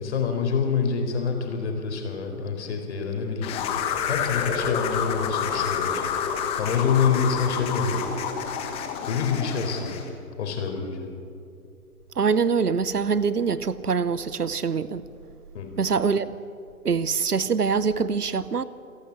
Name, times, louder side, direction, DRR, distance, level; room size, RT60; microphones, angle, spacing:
voice 1, 0.0-3.6 4.0-6.1 6.6-8.0 9.0-10.0 10.4-11.1 15.5-15.7, left 6 dB, 45° left, 4.3 m, -26 dB
sound 1, 3.4-10.1, left 7 dB, 15° left, 1.2 m, -29 dB
voice 2, 12.1-15.1 15.8-16.3 16.8-18.6, right 5 dB, 85° right, 0.9 m, -24 dB
28.0 x 11.5 x 8.4 m
figure-of-eight pair, 135°, 45 cm